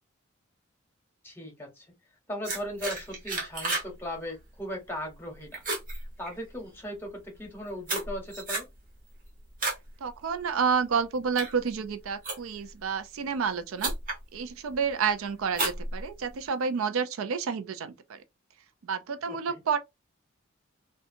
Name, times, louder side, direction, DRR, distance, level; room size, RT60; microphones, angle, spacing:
voice 1, 1.2-1.9 2.3-5.6 6.2-8.7 19.3-19.6, equal, 10° left, 0.9 m, -38 dB
sound 1, 2.4-3.9 4.2-4.6 5.0-5.3 5.5-6.7 7.3-9.9 10.3-10.6 11.1-12.7 13.4-13.5 13.8-14.2 14.7-15.1 15.5-16.5, right 2 dB, 40° right, 1.0 m, -33 dB
voice 2, 10.0-13.9 14.3-18.2 18.8-19.8, right 6 dB, 85° right, 0.4 m, -29 dB
2.7 x 2.2 x 2.6 m
head